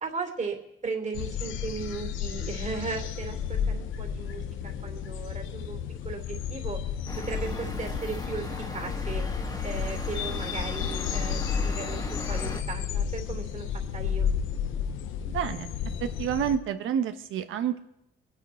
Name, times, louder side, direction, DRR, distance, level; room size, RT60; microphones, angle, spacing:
voice 1, 0.0-0.6 0.8-5.8 6.0-6.8 7.2-8.5 8.7-9.2 9.6-13.7 13.9-14.3, right 4 dB, 35° right, 4 dB, 3.0 m, -36 dB
sound 1, 1.1-16.6, left 7 dB, 90° left, 0.8 m, -32 dB
sound 2, 7.1-12.6, left 1 dB, 20° left, 1.9 m, -36 dB
voice 2, 15.2-15.7 16.0-17.8, right 9 dB, 85° right, 9 dB, 1.1 m, -29 dB
23.0 x 9.1 x 4.4 m, 0.84 s
cardioid pair, 90°, 20 cm